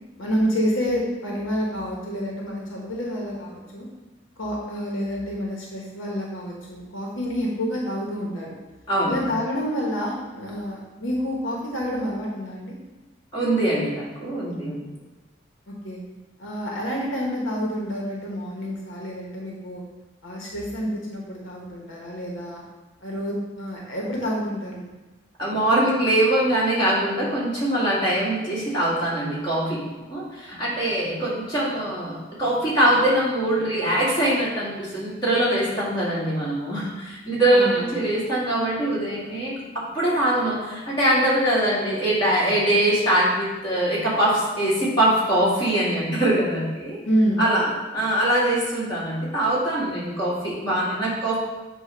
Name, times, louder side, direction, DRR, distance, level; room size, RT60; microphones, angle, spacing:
voice 1, 0.2-3.9 4.4-8.5 9.1-12.8 15.7-16.0 16.4-19.8 20.2-22.6 23.0-24.9 37.5-38.0 47.1-47.4, equal, 80° left, -2 dB, 1.1 m, -28 dB
voice 2, 13.3-14.9 25.4-29.8 30.1-47.0 47.4-51.4, right 1 dB, 25° left, -9 dB, 2.0 m, -23 dB
7.4 x 2.5 x 5.5 m, 1.1 s
head